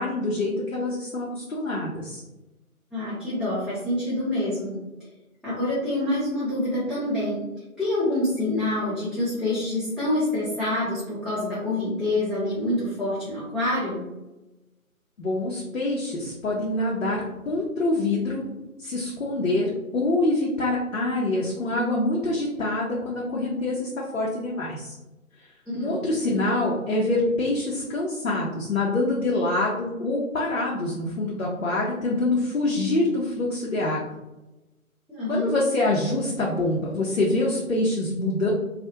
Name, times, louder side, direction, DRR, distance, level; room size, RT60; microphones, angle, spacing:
voice 1, 0.0-2.2 15.2-18.4 18.8-25.0 25.7-34.0 35.3-38.5, left 2 dB, 65° left, -4 dB, 0.6 m, -25 dB
voice 2, 2.9-4.8 5.4-7.4 7.8-14.0 25.7-26.0 35.1-35.6, left 1 dB, ahead, -11 dB, 0.4 m, -26 dB
2.3 x 2.1 x 2.7 m, 1.0 s
figure-of-eight pair, 160°, 43 cm